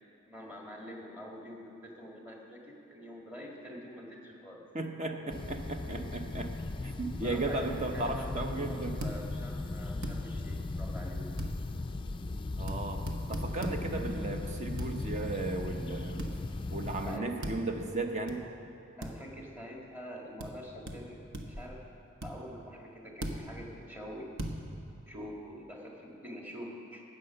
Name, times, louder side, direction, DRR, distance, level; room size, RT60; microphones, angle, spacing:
voice 1, 0.3-4.6 6.9-8.8 9.0-11.4 17.0-17.3 19.0-21.8 22.2-24.5 25.1-27.0, equal, 10° right, -2 dB, 1.7 m, -46 dB
voice 2, 4.7-6.5 6.8-9.0 12.6-13.0 13.3-16.3 16.7-18.4, right 2 dB, 35° right, 4 dB, 0.8 m, -35 dB
sound 1, 5.3-17.2, left 2 dB, 25° left, 0.4 m, -37 dB
sound 2, 9.0-9.2 10.0-10.2 11.4-11.5 12.7-12.8 13.1-13.8 14.8-14.9 16.2-16.4 17.4-17.6 18.3-18.4 19.0-19.1 20.4-20.5 20.9-21.0 21.3-21.7 22.2-22.3 23.2-23.4 24.4-24.6, right 1 dB, 60° right, 1.1 m, -36 dB
13.0 x 8.5 x 5.7 m, 2.9 s
head